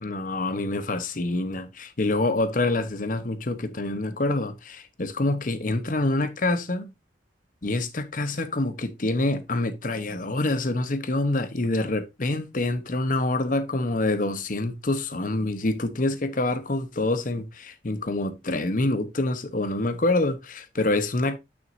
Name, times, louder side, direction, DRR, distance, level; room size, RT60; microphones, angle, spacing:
voice 1, 0.0-6.9 7.6-21.4, left 2 dB, 50° left, 1.0 m, -26 dB
9.1 x 6.2 x 2.6 m
head